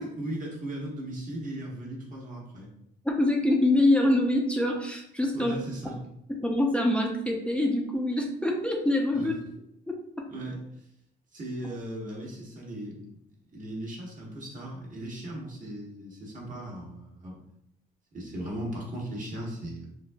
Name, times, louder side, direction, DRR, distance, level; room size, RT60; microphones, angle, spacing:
voice 1, 0.0-2.7 5.3-5.9 9.1-9.3 10.3-10.9 11.3-13.2 13.5-17.4 18.1-19.9, right 1 dB, 40° right, -3 dB, 1.2 m, -37 dB
voice 2, 3.0-5.5 6.3-9.3 9.9-10.3, left 1 dB, 5° left, 0 dB, 0.5 m, -25 dB
3.9 x 2.5 x 2.2 m, 0.78 s
cardioid pair, 90°, 20 cm